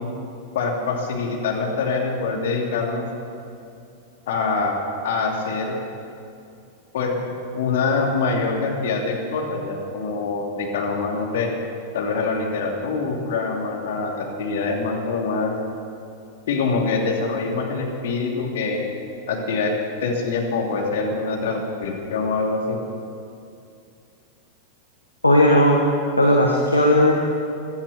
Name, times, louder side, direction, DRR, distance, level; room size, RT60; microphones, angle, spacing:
voice 1, 0.5-3.0 4.3-5.8 6.9-7.1 7.5-11.5 11.9-15.5 16.5-18.8 19.3-19.7 20.0-22.8, left 4 dB, 55° left, 0 dB, 2.7 m, -24 dB
voice 2, 25.2-25.8 26.2-27.1, left 1 dB, 85° left, -1 dB, 1.5 m, -16 dB
16.0 x 12.0 x 6.8 m, 2.5 s
figure-of-eight pair, 90°, 0 cm